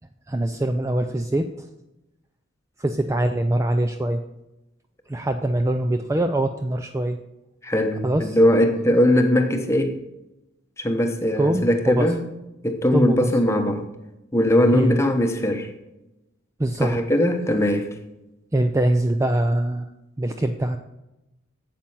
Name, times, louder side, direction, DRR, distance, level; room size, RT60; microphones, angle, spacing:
voice 1, 0.3-1.7 2.8-4.2 5.1-7.2 8.0-8.4 11.4-12.1 12.9-13.3 14.7-15.0 16.6-17.0 18.5-19.9 20.2-20.8, right 1 dB, 15° right, 7 dB, 0.4 m, -23 dB
voice 2, 7.6-10.0 10.8-12.2 12.6-13.8 14.3-15.7 16.8-17.9, left 1 dB, 15° left, 6 dB, 0.9 m, -20 dB
8.9 x 7.6 x 5.6 m, 0.96 s
head